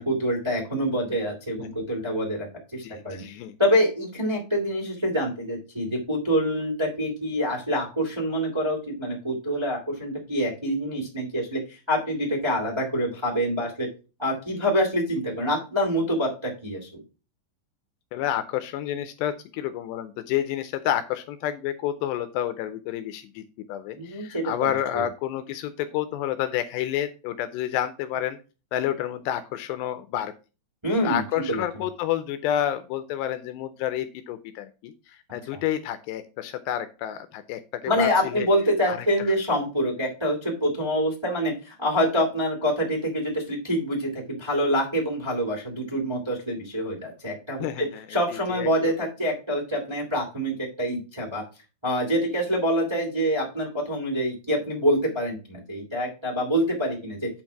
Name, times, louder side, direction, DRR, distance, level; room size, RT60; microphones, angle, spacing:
voice 1, 0.0-2.5 2.7-3.2 3.6-13.9 14.2-17.0 23.9-24.5 24.9-25.0 30.8-31.6 35.5-35.6 37.8-51.4 51.8-57.4, equal, 10° right, -3 dB, 1.8 m, -26 dB
voice 2, 2.8-3.6 18.1-28.4 28.7-30.3 31.0-38.5 38.9-39.1 47.6-48.1 48.5-48.9, left 11 dB, 80° left, 10 dB, 2.6 m, -29 dB
8.4 x 4.5 x 5.8 m, 0.32 s
omnidirectional pair, 5.2 m